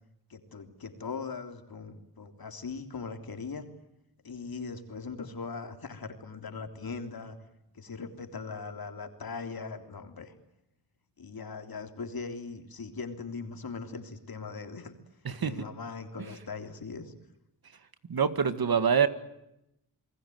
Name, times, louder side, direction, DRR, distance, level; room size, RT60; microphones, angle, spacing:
voice 1, 0.3-3.7 4.2-7.4 7.7-10.3 11.2-14.9 15.4-17.1, left 4 dB, 60° left, 6 dB, 3.5 m, -40 dB
voice 2, 18.1-19.1, right 7 dB, 60° right, 11 dB, 1.9 m, -25 dB
29.0 x 20.5 x 9.4 m, 0.86 s
wide cardioid pair, 85°, 40 cm